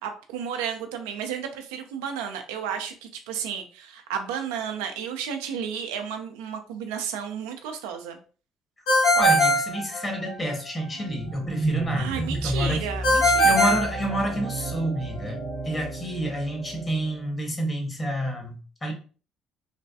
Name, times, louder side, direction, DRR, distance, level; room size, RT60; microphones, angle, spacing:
voice 1, 0.0-8.2 12.0-13.8, right 7 dB, 85° right, 5 dB, 0.4 m, -32 dB
Ringtone, 8.9-10.5 13.0-14.7, equal, 80° left, 1.3 m, -21 dB
voice 2, 9.1-12.8 13.4-18.9, equal, 25° left, 2 dB, 1.3 m, -29 dB
sound 1, 10.9-17.3, right 3 dB, 40° right, 0.7 m, -33 dB
3.2 x 2.2 x 2.7 m, 0.37 s
hypercardioid pair, 65°, 0 cm